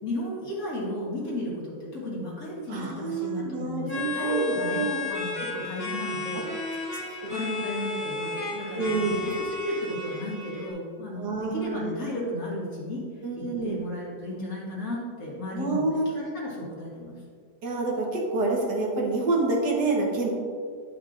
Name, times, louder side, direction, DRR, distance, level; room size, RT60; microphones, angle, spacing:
voice 1, 0.0-6.8 7.2-13.0 13.3-17.1, left 1 dB, 60° left, -5 dB, 2.1 m, -34 dB
voice 2, 2.7-5.0 6.3-6.4 6.9-7.2 8.7-9.3 11.1-12.0 13.2-13.8 15.5-16.2 17.6-20.3, right 3 dB, 80° right, -2 dB, 1.8 m, -28 dB
sound 1, 3.9-10.7, left 3 dB, 40° left, 1.5 m, -33 dB
10.5 x 5.4 x 2.5 m, 2.1 s
omnidirectional pair, 1.8 m